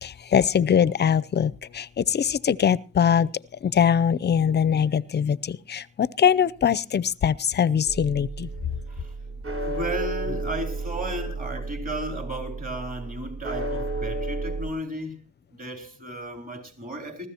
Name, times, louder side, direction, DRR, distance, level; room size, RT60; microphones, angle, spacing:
voice 1, 0.0-3.3 3.6-8.5, left 8 dB, 35° left, 0.6 m, -22 dB
sound 1, 7.9-14.7, right 2 dB, 45° right, 3.6 m, -32 dB
voice 2, 8.9-15.2 15.6-17.3, right 1 dB, 30° right, 4.2 m, -34 dB
20.0 x 14.5 x 2.9 m
cardioid pair, 90°, 30 cm